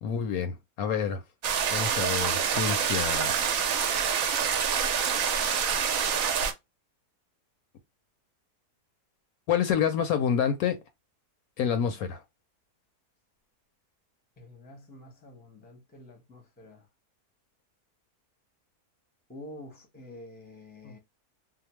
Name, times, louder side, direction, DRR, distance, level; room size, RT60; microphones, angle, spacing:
voice 1, 0.0-1.2 1.7-3.3 9.5-10.8 11.6-12.2 20.8-20.9, left 8 dB, 70° left, 1.0 m, -28 dB
sound 1, 1.4-6.5, right 7 dB, 65° right, 0.9 m, -26 dB
voice 2, 14.4-16.8 19.3-21.0, left 1 dB, 10° left, 0.6 m, -48 dB
2.8 x 2.0 x 2.9 m
omnidirectional pair, 1.7 m